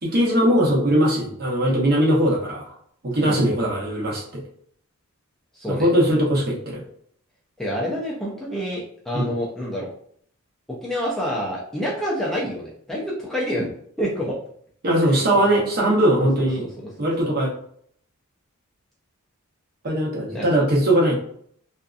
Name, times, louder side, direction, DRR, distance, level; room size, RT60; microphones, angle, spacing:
voice 1, 0.0-2.7 3.0-4.4 5.7-6.8 9.1-9.3 14.8-16.7 17.0-17.5 19.8-21.1, right 1 dB, 45° right, -3 dB, 0.8 m, -20 dB
voice 2, 5.5-5.9 7.6-9.9 10.7-13.7 14.0-14.4 15.0-15.6 16.2-16.7 17.0-17.1 20.3-20.5, equal, ahead, -5 dB, 0.4 m, -28 dB
2.6 x 2.4 x 2.3 m, 0.63 s
head